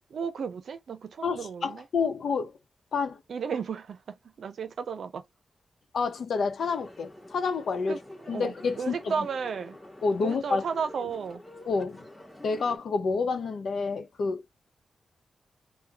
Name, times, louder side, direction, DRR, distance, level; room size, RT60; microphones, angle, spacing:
voice 1, 0.1-1.8 3.3-5.2 7.9-9.8 10.2-11.4, right 6 dB, 75° right, 0.6 m, -34 dB
voice 2, 1.2-2.5 2.9-3.2 5.9-8.0 8.3-9.0 10.0-10.6 11.7-12.0 12.4-14.4, left 4 dB, 70° left, 0.8 m, -28 dB
sound 1, 6.6-12.8, left 1 dB, 15° left, 1.3 m, -48 dB
2.8 x 2.2 x 3.5 m
wide cardioid pair, 115°, 0 cm